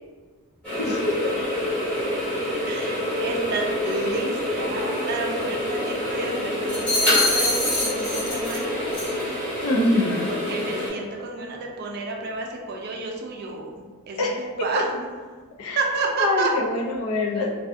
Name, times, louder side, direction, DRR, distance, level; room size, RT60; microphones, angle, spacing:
sound 1, 0.6-10.9, left 1 dB, 5° left, 1.2 m, -27 dB
voice 1, 0.8-1.2 9.6-10.3 14.2-14.7 15.6-15.8 16.2-17.5, left 2 dB, 80° left, -1 dB, 0.5 m, -24 dB
voice 2, 2.7-9.1 10.3-15.2 15.8-16.5, right 3 dB, 45° right, 0 dB, 0.3 m, -31 dB
sound 2, 6.7-8.6 8.9-9.2, left 2 dB, 50° left, 1.2 m, -24 dB
2.5 x 2.3 x 2.4 m, 1.5 s
head